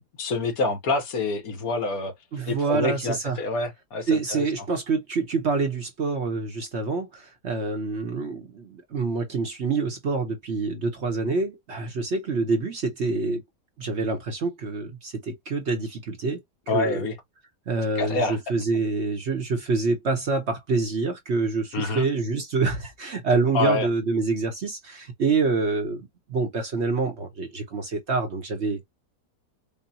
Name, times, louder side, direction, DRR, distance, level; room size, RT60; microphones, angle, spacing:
voice 1, 0.0-2.1 2.5-4.4 16.7-17.1 18.0-18.4 21.7-22.1 23.5-23.9, left 3 dB, 65° left, 1.5 m, -26 dB
voice 2, 2.3-3.4 4.1-13.4 13.8-17.1 17.7-28.8, right 4 dB, 50° right, 1.1 m, -26 dB
5.3 x 2.2 x 2.7 m
omnidirectional pair, 1.7 m